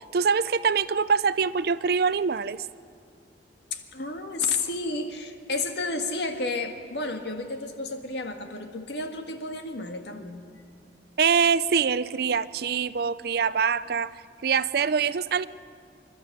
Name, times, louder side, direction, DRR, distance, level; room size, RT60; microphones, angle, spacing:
voice 1, 0.1-2.7 11.2-14.1 14.4-15.5, right 6 dB, 60° right, 16 dB, 0.5 m, -24 dB
voice 2, 3.7-10.4, left 3 dB, 70° left, 5 dB, 1.7 m, -31 dB
26.5 x 12.0 x 8.6 m, 2.4 s
head